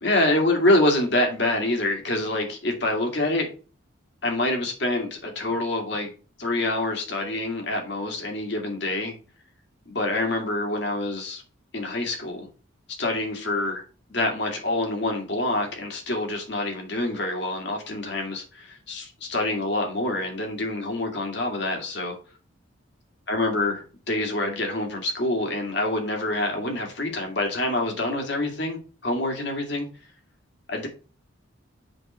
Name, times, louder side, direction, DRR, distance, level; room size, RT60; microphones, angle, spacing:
voice 1, 0.0-3.5 4.2-6.1 6.4-9.1 9.9-11.4 11.7-12.5 13.0-13.8 14.1-22.2 23.3-29.9 30.7-30.9, left 2 dB, 55° left, 2 dB, 2.4 m, -26 dB
7.7 x 3.8 x 6.2 m, 0.36 s
head